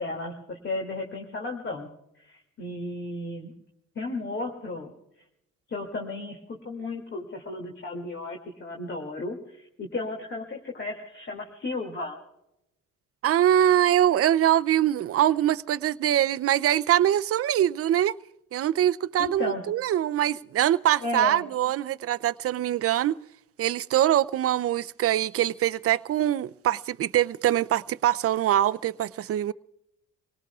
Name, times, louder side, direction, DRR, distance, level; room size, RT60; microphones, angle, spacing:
voice 1, 0.0-1.9 2.2-3.5 4.0-4.9 5.7-6.4 6.6-12.2 19.2-19.6 21.0-21.4, left 2 dB, 40° left, 2.5 m, -34 dB
voice 2, 13.2-18.2 18.5-23.1 23.6-29.5, right 12 dB, 50° right, 0.5 m, -23 dB
27.0 x 18.5 x 2.4 m
cardioid pair, 90°, 30 cm